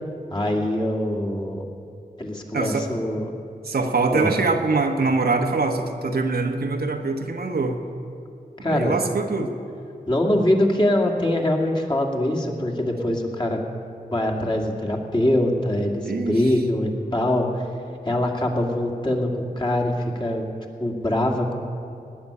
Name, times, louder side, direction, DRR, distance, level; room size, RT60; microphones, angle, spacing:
voice 1, 0.3-1.6 2.2-3.3 4.1-4.3 8.6-8.9 10.1-13.6 14.1-17.7 18.0-19.3 19.6-20.5 20.8-21.5, left 1 dB, 30° left, -1 dB, 2.3 m, -23 dB
voice 2, 2.5-2.9 3.6-7.8 8.6-9.5 16.0-16.4, right 3 dB, 80° right, 3 dB, 1.3 m, -23 dB
19.0 x 6.3 x 9.9 m, 2.6 s
wide cardioid pair, 60°, 16 cm